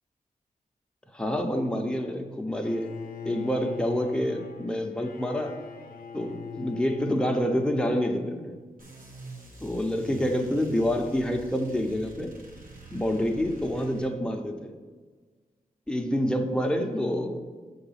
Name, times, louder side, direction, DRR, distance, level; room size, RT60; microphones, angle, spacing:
voice 1, 1.1-2.9 3.2-5.5 6.1-8.5 9.6-12.3 12.9-14.7 15.9-17.4, equal, 5° left, 3 dB, 0.8 m, -27 dB
Bowed string instrument, 2.6-8.7, left 6 dB, 90° left, 0.5 m, -42 dB
sound 1, 8.8-14.1, right 1 dB, 70° right, 1.3 m, -46 dB
6.8 x 3.9 x 5.7 m, 1.4 s
cardioid pair, 65°, 15 cm